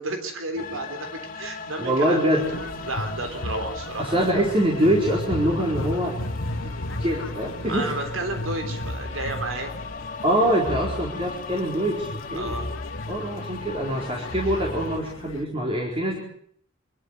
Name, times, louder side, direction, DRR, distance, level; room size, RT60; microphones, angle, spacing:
voice 1, 0.0-4.2 7.6-9.7 12.4-12.7, right 2 dB, 80° right, 6 dB, 3.8 m, -32 dB
sound 1, 0.6-15.0, left 3 dB, 45° left, 2.0 m, -38 dB
voice 2, 1.8-2.4 4.0-6.7 7.0-7.9 10.2-12.6 13.1-16.2, right 1 dB, 30° right, -2 dB, 4.4 m, -24 dB
sound 2, 2.4-15.4, left 1 dB, 75° left, 1.5 m, -35 dB
26.0 x 13.0 x 9.8 m, 0.65 s
head